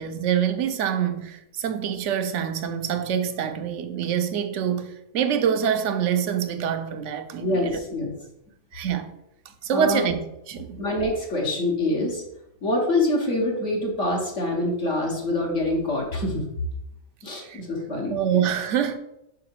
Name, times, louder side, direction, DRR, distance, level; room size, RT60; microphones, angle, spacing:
voice 1, 0.0-7.8 8.7-9.1 9.6-10.2 10.5-10.8 17.4-17.6 18.1-19.0, right 8 dB, 65° right, 0.9 m, -25 dB
voice 2, 7.4-8.1 9.7-10.0 10.8-12.2 12.6-16.4 17.2-18.2, left 2 dB, 60° left, 1.6 m, -25 dB
5.8 x 4.7 x 4.7 m
omnidirectional pair, 1.5 m